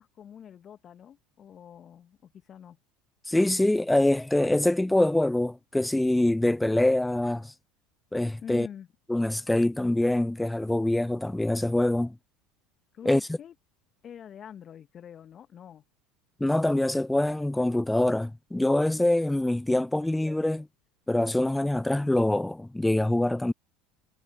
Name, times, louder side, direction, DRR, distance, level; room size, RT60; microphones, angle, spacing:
voice 1, 0.0-2.8 8.4-8.9 12.9-13.5 14.0-15.8, left 9 dB, 40° left, 1.3 m, -45 dB
voice 2, 3.3-7.5 8.1-8.7 9.1-12.2 13.1-13.2 16.4-20.7 21.1-23.5, left 1 dB, 5° left, 0.4 m, -24 dB
figure-of-eight pair, 70°, 0 cm